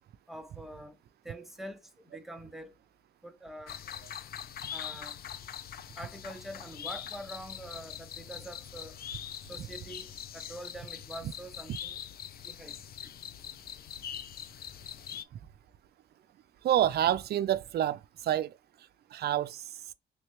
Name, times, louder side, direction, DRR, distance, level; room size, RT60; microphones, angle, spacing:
voice 1, 0.3-1.0 1.2-2.7 3.2-3.8 4.7-5.2 6.0-9.0 9.4-12.0 12.4-12.9 15.1-15.2, right 1 dB, ahead, 0.7 m, -45 dB
sound 1, 3.7-15.2, left 9 dB, 50° left, 0.4 m, -43 dB
voice 2, 16.6-18.5 19.1-19.6, right 11 dB, 55° right, 0.4 m, -28 dB
3.2 x 3.2 x 3.0 m
cardioid pair, 90°, 20 cm